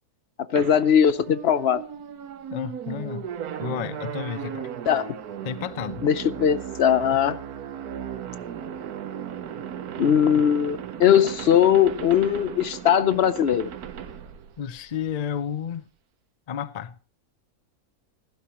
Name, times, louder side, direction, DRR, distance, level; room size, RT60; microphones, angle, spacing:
voice 1, 0.5-1.8 4.9-5.1 6.0-7.4 10.0-13.7, left 9 dB, 55° left, 0.8 m, -20 dB
sound 1, 0.6-15.1, right 9 dB, 90° right, 1.4 m, -36 dB
voice 2, 2.5-3.3 3.6-4.7 5.4-6.0 14.6-15.8 16.5-16.9, left 8 dB, 80° left, 0.3 m, -31 dB
16.5 x 12.0 x 3.0 m
omnidirectional pair, 1.5 m